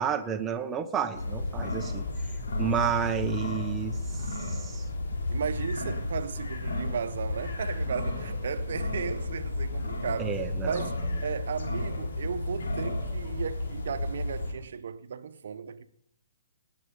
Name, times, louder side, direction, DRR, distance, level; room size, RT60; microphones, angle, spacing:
voice 1, 0.0-2.0 2.6-4.0 4.5-4.8 10.2-10.9, right 7 dB, 15° right, 1.0 m, -30 dB
sound 1, 1.1-14.5, left 2 dB, 70° left, 3.3 m, -32 dB
voice 2, 5.3-10.3 10.6-15.9, right 6 dB, 65° right, 0.9 m, -35 dB
19.5 x 7.8 x 5.3 m
hypercardioid pair, 130°, 0 cm